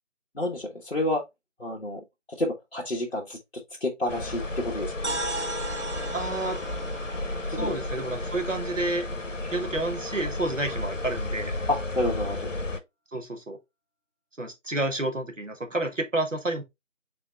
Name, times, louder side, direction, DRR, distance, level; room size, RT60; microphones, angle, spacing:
voice 1, 0.3-1.2 1.6-3.4 3.8-5.2 7.5-7.8 9.4-9.5 11.7-12.4, left 1 dB, 55° left, 1.2 m, -29 dB
sound 1, 4.1-12.8, left 2 dB, 80° left, 1.1 m, -33 dB
sound 2, 5.0-9.0, right 2 dB, 65° right, 0.7 m, -37 dB
voice 2, 6.1-6.6 7.6-9.1 9.5-11.5 13.1-13.6 14.4-16.6, right 2 dB, 80° right, 1.6 m, -30 dB
4.7 x 3.5 x 3.2 m
figure-of-eight pair, 175°, 37 cm